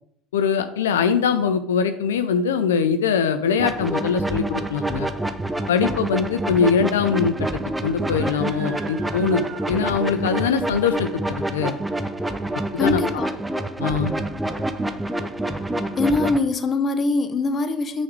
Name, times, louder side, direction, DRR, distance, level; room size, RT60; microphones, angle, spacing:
voice 1, 0.3-5.1 5.7-11.7 12.7-13.0 13.8-14.1, left 6 dB, 90° left, 9 dB, 0.4 m, -22 dB
sound 1, 3.6-16.4, right 1 dB, 10° right, 0.5 m, -27 dB
Screaming, 7.9-10.7, right 7 dB, 55° right, 0.9 m, -44 dB
voice 2, 12.8-13.3 16.0-18.0, left 3 dB, 35° left, 10 dB, 0.7 m, -22 dB
5.8 x 4.1 x 4.6 m, 0.72 s
hypercardioid pair, 85°, 0 cm